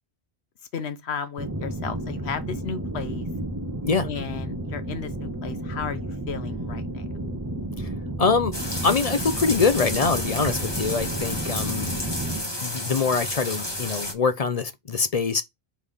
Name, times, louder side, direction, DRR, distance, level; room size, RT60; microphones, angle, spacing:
voice 1, 0.7-3.3 4.0-7.1, left 6 dB, 80° left, 1.2 m, -34 dB
sound 1, 1.4-12.4, right 1 dB, 20° right, 0.5 m, -32 dB
voice 2, 8.2-8.5 8.8-12.0 12.6-15.4, left 5 dB, 45° left, 0.5 m, -24 dB
sound 2, 8.5-14.1, left 1 dB, 25° left, 1.4 m, -31 dB
5.0 x 3.4 x 5.4 m
omnidirectional pair, 1.1 m